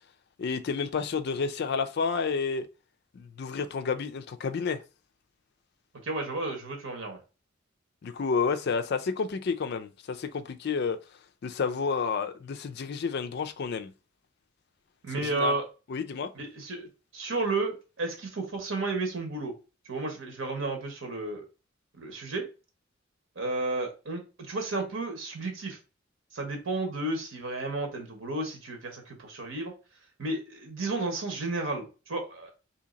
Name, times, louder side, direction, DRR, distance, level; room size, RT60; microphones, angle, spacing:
voice 1, 0.4-2.7 3.1-4.8 8.0-11.0 11.4-13.9 15.2-15.6 15.9-16.3, left 5 dB, 55° left, 0.4 m, -30 dB
voice 2, 6.0-7.2 15.0-15.7 16.3-19.6 19.9-21.4 21.9-22.5 23.4-25.8 26.3-29.7 30.2-32.5, right 2 dB, 85° right, 1.1 m, -32 dB
2.8 x 2.8 x 3.8 m
head